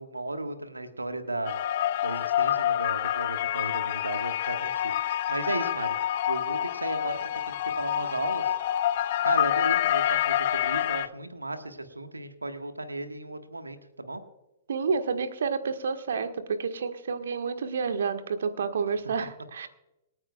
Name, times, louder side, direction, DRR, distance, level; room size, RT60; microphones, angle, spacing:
voice 1, 0.0-1.6 2.0-5.9 6.3-7.2 7.5-8.5 9.2-14.2, right 2 dB, 85° right, 7 dB, 1.4 m, -35 dB
sound 1, 1.5-11.1, left 11 dB, 45° left, 0.6 m, -27 dB
voice 2, 14.7-19.7, right 5 dB, 60° right, 8 dB, 1.4 m, -29 dB
27.0 x 9.7 x 2.3 m, 0.91 s
figure-of-eight pair, 110°, 0 cm